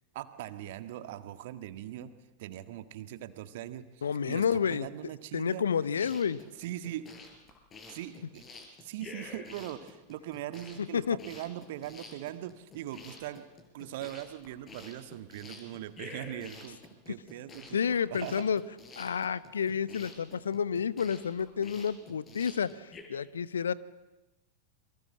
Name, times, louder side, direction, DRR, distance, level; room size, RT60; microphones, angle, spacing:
voice 1, 0.1-2.1 2.4-5.6 6.6-7.1 7.9-8.4 8.8-13.5 13.7-16.8 17.1-18.4, right 12 dB, 50° right, 11 dB, 1.6 m, -41 dB
voice 2, 4.0-4.9 5.3-6.4 10.9-11.2 17.7-18.6 19.0-23.7, left 7 dB, 70° left, 19 dB, 0.9 m, -30 dB
sound 1, 6.0-23.0, left 3 dB, 25° left, 5.5 m, -49 dB
28.0 x 23.5 x 7.7 m, 1.0 s
figure-of-eight pair, 90°, 0 cm